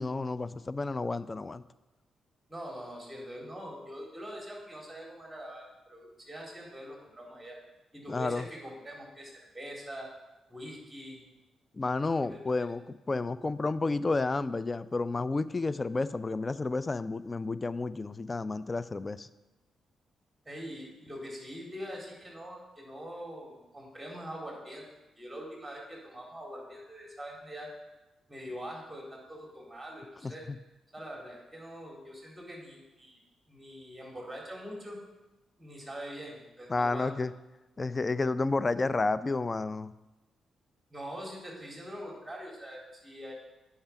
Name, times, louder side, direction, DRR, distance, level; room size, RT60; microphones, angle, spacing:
voice 1, 0.0-1.6 8.1-8.5 11.8-19.3 30.2-30.6 36.7-37.3 37.8-39.9, left 3 dB, 35° left, 15 dB, 0.4 m, -31 dB
voice 2, 2.5-7.6 7.9-10.1 10.5-11.2 12.2-12.7 20.5-24.8 25.2-27.7 28.3-30.5 30.9-33.2 33.5-35.0 35.6-37.1 40.9-43.3, equal, 10° right, -2 dB, 3.7 m, -43 dB
8.7 x 5.7 x 5.9 m, 1.0 s
hypercardioid pair, 45°, 0 cm